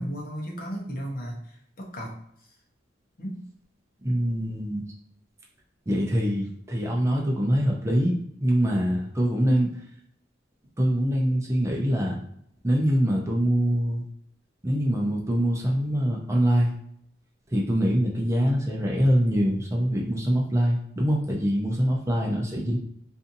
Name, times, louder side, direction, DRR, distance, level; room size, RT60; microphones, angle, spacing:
voice 1, 0.0-2.2 3.2-3.4, equal, 45° left, -2 dB, 0.7 m, -34 dB
voice 2, 4.0-4.8 5.9-9.8 10.8-12.2 12.6-14.0 14.6-16.7 17.5-22.8, equal, 15° right, -1 dB, 0.5 m, -24 dB
2.6 x 2.5 x 2.6 m, 0.70 s
head